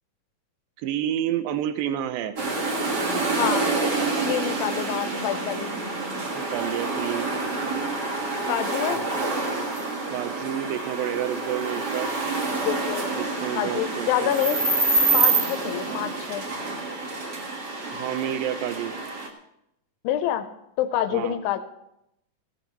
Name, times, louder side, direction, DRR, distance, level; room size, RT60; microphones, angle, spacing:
voice 1, 0.8-2.3 6.3-7.3 10.1-12.1 13.1-14.3 17.9-18.9 21.1-21.4, right 11 dB, 80° right, 9 dB, 2.5 m, -29 dB
sound 1, 2.4-19.3, right 3 dB, 55° right, 1.1 m, -27 dB
voice 2, 3.4-3.7 4.2-5.7 8.5-9.1 12.6-13.0 13.6-14.6 15.1-16.5 20.0-20.5 20.8-21.6, left 11 dB, 85° left, 9 dB, 2.4 m, -27 dB
17.0 x 15.5 x 3.0 m, 0.83 s
omnidirectional pair, 4.2 m